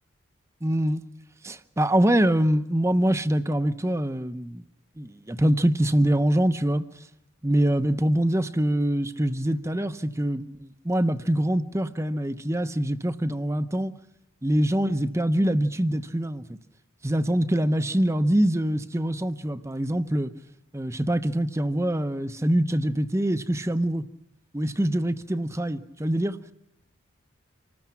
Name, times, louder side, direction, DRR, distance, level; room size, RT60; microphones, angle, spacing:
voice 1, 0.6-1.0 1.4-4.6 5.0-6.8 7.4-13.9 14.4-16.6 17.0-20.3 20.7-24.0 24.5-26.4, right 1 dB, 15° right, 0.7 m, -24 dB
27.0 x 19.5 x 5.8 m
head